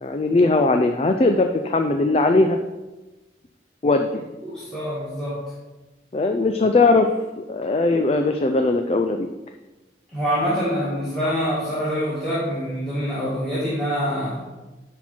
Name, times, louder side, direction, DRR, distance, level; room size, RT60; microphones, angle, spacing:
voice 1, 0.0-2.6 3.8-4.1 6.1-7.1 7.4-9.3, left 3 dB, 35° left, 6 dB, 0.4 m, -19 dB
voice 2, 4.4-5.4 10.1-14.4, equal, 5° left, -12 dB, 2.0 m, -25 dB
10.5 x 4.3 x 4.4 m, 1.1 s
head